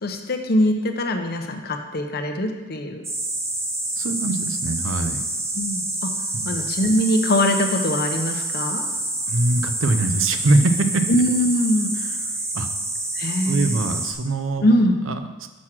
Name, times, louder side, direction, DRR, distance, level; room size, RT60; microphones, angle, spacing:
voice 1, 0.0-3.1 5.5-6.1 6.4-8.9 11.1-11.9 13.2-13.8 14.6-15.0, left 1 dB, 50° left, 5 dB, 0.8 m, -22 dB
sound 1, 3.0-14.1, right 2 dB, 15° right, 1.0 m, -27 dB
voice 2, 4.0-5.2 6.3-6.5 9.3-11.0 12.5-12.7 13.4-14.6 15.1-15.5, right 2 dB, 80° right, 8 dB, 0.7 m, -22 dB
6.3 x 6.1 x 6.0 m, 1.2 s
head